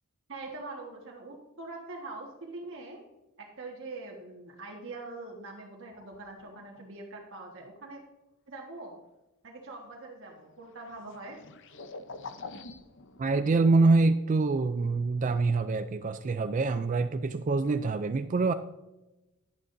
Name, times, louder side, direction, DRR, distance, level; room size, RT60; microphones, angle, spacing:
voice 1, 0.3-3.0 3.4-8.0 8.5-9.0 9.4-11.4, right 2 dB, 60° right, -2 dB, 1.5 m, -43 dB
sound 1, 5.9-6.9 10.3-13.3, left 3 dB, 55° left, 0.7 m, -46 dB
voice 2, 13.2-18.5, right 3 dB, 35° right, 10 dB, 0.4 m, -25 dB
11.5 x 10.5 x 2.6 m, 1.0 s
head